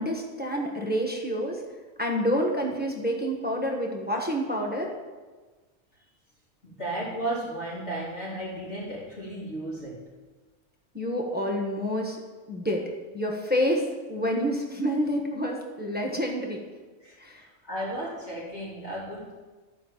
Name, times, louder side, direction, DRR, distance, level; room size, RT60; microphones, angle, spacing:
voice 1, 0.0-1.6 2.0-4.9 10.9-12.2 12.5-12.9 13.1-16.6 17.2-17.4, equal, 10° right, 0 dB, 1.2 m, -28 dB
voice 2, 6.6-10.1 17.0-19.4, right 1 dB, 55° left, -8 dB, 3.8 m, -34 dB
12.5 x 5.3 x 7.4 m, 1.3 s
omnidirectional pair, 1.3 m